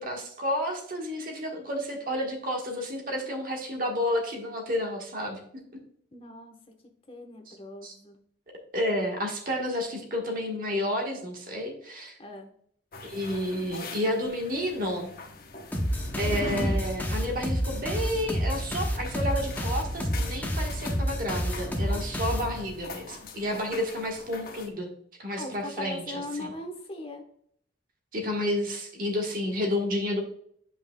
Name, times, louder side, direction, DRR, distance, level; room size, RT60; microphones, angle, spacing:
voice 1, 0.0-5.4 7.5-7.6 7.8-7.9 8.7-12.2 13.0-15.1 16.2-24.9 25.2-26.5 28.1-30.2, left 1 dB, 50° right, 1 dB, 1.4 m, -31 dB
voice 2, 6.1-6.6 7.1-8.2 12.2-12.5 25.4-27.2, left 1 dB, 30° left, 3 dB, 1.1 m, -39 dB
sound 1, 12.9-24.7, left 2 dB, 50° left, 0.8 m, -41 dB
sound 2, 15.7-22.9, equal, 10° left, 0.7 m, -29 dB
8.7 x 5.4 x 2.2 m, 0.64 s
head